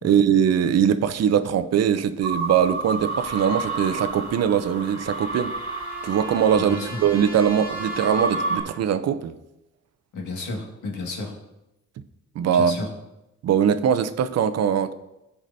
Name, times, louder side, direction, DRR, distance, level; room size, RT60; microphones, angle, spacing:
voice 1, 0.0-5.5 6.0-9.3 12.4-12.8 13.4-14.9, right 8 dB, 60° right, 0.6 m, -21 dB
sound 1, 2.2-8.6, right 3 dB, 20° left, 3.2 m, -30 dB
sound 2, 4.3-9.0, equal, 5° right, 1.9 m, -41 dB
voice 2, 6.6-7.0 10.1-11.3 12.5-12.9, left 3 dB, 80° left, 1.9 m, -32 dB
14.5 x 4.9 x 2.7 m
cardioid pair, 90°, 30 cm